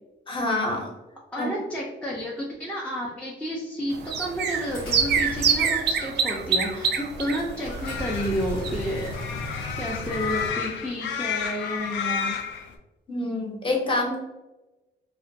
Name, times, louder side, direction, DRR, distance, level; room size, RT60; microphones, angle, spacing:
voice 1, 0.3-0.9 1.4-1.6 13.1-14.2, left 2 dB, 25° left, -2 dB, 0.8 m, -26 dB
voice 2, 1.3-9.4 9.8-12.4, equal, 5° left, -4 dB, 0.4 m, -31 dB
sound 1, 3.9-9.1 9.4-9.5 9.7-9.8, right 6 dB, 55° right, 0.5 m, -26 dB
sound 2, 4.5-5.9 7.4-10.5, left 2 dB, 90° left, 0.8 m, -36 dB
sound 3, 7.6-12.7, left 7 dB, 65° left, 0.4 m, -31 dB
2.3 x 2.2 x 2.6 m, 1.1 s
cardioid pair, 90°, 20 cm